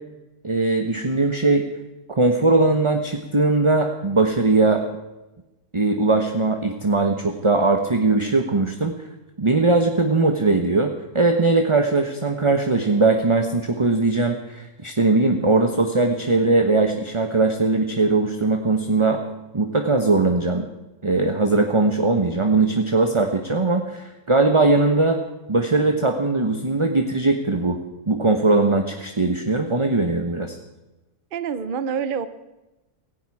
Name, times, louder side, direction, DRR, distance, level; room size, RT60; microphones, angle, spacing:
voice 1, 0.4-1.7 2.1-4.9 5.7-8.9 9.4-19.2 19.5-20.7 21.0-25.2 25.5-27.8 28.1-30.5, right 3 dB, 20° right, 5 dB, 1.1 m, -20 dB
voice 2, 31.3-32.3, right 7 dB, 40° right, 12 dB, 0.9 m, -26 dB
17.5 x 16.5 x 4.8 m, 1.0 s
omnidirectional pair, 1.6 m